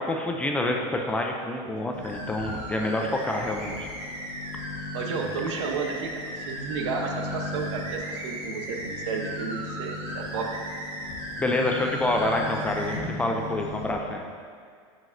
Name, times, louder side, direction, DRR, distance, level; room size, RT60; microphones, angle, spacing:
voice 1, 0.0-3.9 11.4-14.2, left 1 dB, 10° left, 1 dB, 0.4 m, -27 dB
sound 1, 1.9-13.9, left 2 dB, 75° left, 1.0 m, -39 dB
sound 2, 2.0-13.0, right 1 dB, 35° right, 1.3 m, -37 dB
voice 2, 4.9-10.5, right 5 dB, 90° right, 2 dB, 0.8 m, -32 dB
7.2 x 5.9 x 2.6 m, 2.1 s
supercardioid pair, 155°, 15 cm